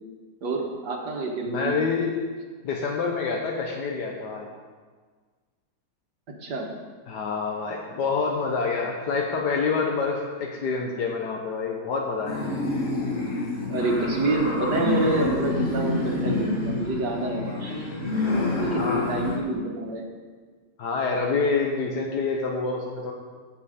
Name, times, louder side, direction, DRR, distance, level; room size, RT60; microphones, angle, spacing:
voice 1, 0.4-1.8 6.4-6.7 13.7-17.9 18.6-20.1, right 2 dB, 70° right, 1 dB, 2.0 m, -27 dB
voice 2, 1.5-2.1 2.6-4.5 7.1-12.4 18.5-19.1 20.8-23.1, left 4 dB, 75° left, 0 dB, 1.5 m, -27 dB
sound 1, 12.3-19.4, left 2 dB, 45° left, 2.0 m, -27 dB
15.0 x 5.5 x 5.0 m, 1.5 s
omnidirectional pair, 1.8 m